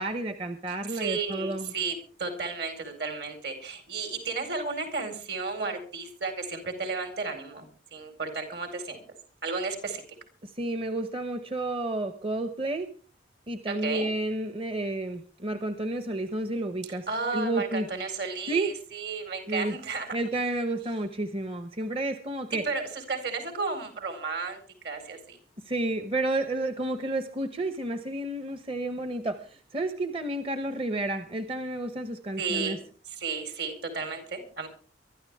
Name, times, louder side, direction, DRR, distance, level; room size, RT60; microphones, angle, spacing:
voice 1, 0.0-1.7 10.4-12.9 13.5-17.9 18.5-18.7 19.4-19.7 20.1-22.6 25.6-32.8, right 2 dB, 30° right, 9 dB, 1.0 m, -31 dB
voice 2, 0.9-1.9 2.2-7.7 7.9-9.0 9.4-10.0 13.8-14.1 17.1-20.2 22.6-25.4 32.4-32.8 33.1-34.7, right 4 dB, 60° right, 6 dB, 4.8 m, -33 dB
23.5 x 13.0 x 3.6 m, 0.40 s
head